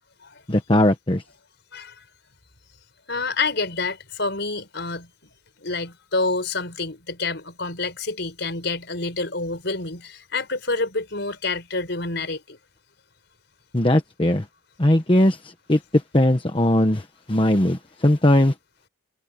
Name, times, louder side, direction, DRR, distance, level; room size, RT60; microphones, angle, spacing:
voice 1, 0.5-1.2 13.7-14.4 14.8-18.5, left 1 dB, 25° left, 1.1 m, -19 dB
voice 2, 3.1-5.1 5.6-12.6, left 3 dB, 55° left, 6.1 m, -28 dB
head